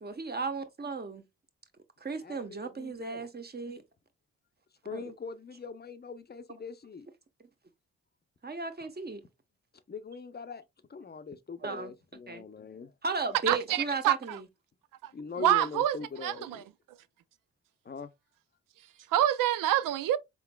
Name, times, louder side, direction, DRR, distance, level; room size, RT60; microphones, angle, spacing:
voice 1, 0.0-1.2 2.0-3.8 4.9-5.0 8.4-9.2 11.6-11.9 12.3-12.4 13.0-14.5, right 4 dB, 30° right, 1.0 m, -35 dB
voice 2, 2.2-3.3 4.8-7.1 9.9-10.6 10.9-12.9 15.1-16.7 17.8-18.1, left 5 dB, 30° left, 0.6 m, -42 dB
voice 3, 13.5-14.4 15.0-15.1 15.4-16.0 16.2-16.6 19.1-20.2, right 12 dB, 70° right, 0.5 m, -26 dB
4.2 x 3.7 x 2.2 m
hypercardioid pair, 40°, 33 cm